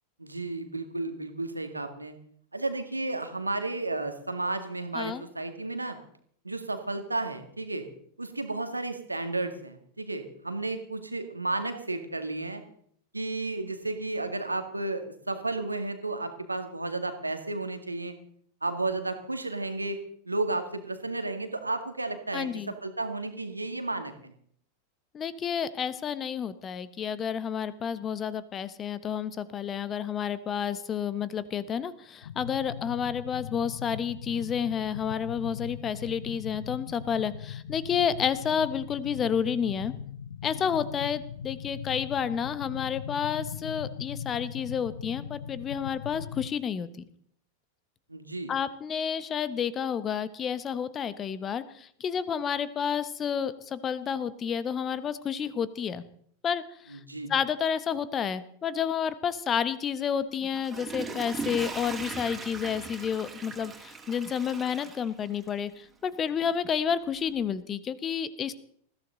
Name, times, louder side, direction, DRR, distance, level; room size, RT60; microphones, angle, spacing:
voice 1, 0.2-2.2 2.5-6.0 6.4-7.8 8.2-12.6 13.1-18.2 18.6-20.0 20.3-24.3 48.1-48.5 56.9-57.3, right 2 dB, 85° right, 8 dB, 2.0 m, -33 dB
voice 2, 22.3-22.7 25.1-39.9 40.4-46.9 48.5-56.0 56.4-57.0 57.3-68.5, left 7 dB, 25° left, 16 dB, 1.1 m, -30 dB
sound 1, 32.2-46.5, left 8 dB, 65° left, 0.6 m, -40 dB
Water / Toilet flush, 60.4-65.7 66.2-66.3, right 4 dB, 15° right, 3.3 m, -39 dB
20.5 x 15.0 x 3.9 m, 0.64 s
figure-of-eight pair, 90°, 0 cm